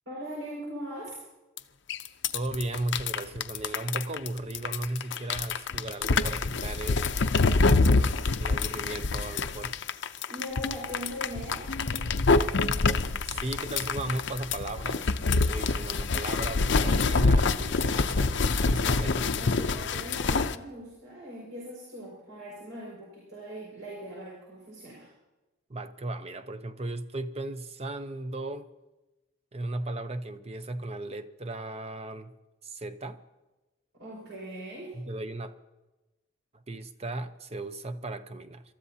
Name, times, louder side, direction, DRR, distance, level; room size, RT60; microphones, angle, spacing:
voice 1, 0.1-1.2 10.3-11.6 19.4-25.1 33.9-35.0, equal, 70° right, -5 dB, 5.4 m, -40 dB
sound 1, 1.6-1.7 1.9-20.5, left 3 dB, 60° left, 0.6 m, -26 dB
voice 2, 2.3-7.0 8.0-9.7 13.2-18.3 18.6-19.3 25.7-28.7 29.5-32.3 32.6-33.2 34.9-35.5 36.7-38.6, right 2 dB, 30° right, 10 dB, 0.7 m, -36 dB
26.5 x 13.5 x 2.8 m, 1.1 s
head